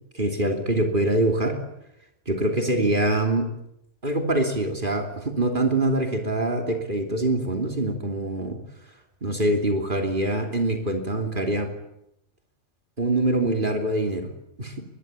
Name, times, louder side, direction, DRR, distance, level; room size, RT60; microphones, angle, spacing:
voice 1, 0.1-1.6 2.3-3.5 4.0-8.6 9.2-11.7 13.0-14.3 14.6-14.7, right 2 dB, 45° right, 4 dB, 3.2 m, -24 dB
23.5 x 20.5 x 10.0 m, 0.82 s
omnidirectional pair, 1.3 m